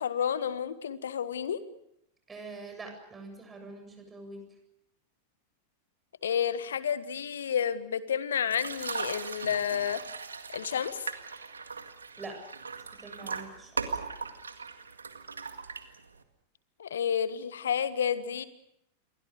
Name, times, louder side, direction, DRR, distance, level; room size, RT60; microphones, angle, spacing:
voice 1, 0.0-1.6 6.2-10.0 10.5-11.0 16.8-18.5, left 8 dB, 65° left, 15 dB, 1.4 m, -30 dB
voice 2, 2.3-4.4 12.2-12.4 13.0-13.8, right 3 dB, 15° right, 5 dB, 7.7 m, -44 dB
sound 1, 8.5-16.2, right 5 dB, 75° right, 1.9 m, -39 dB
28.5 x 23.0 x 6.6 m, 0.79 s
figure-of-eight pair, 90°, 0 cm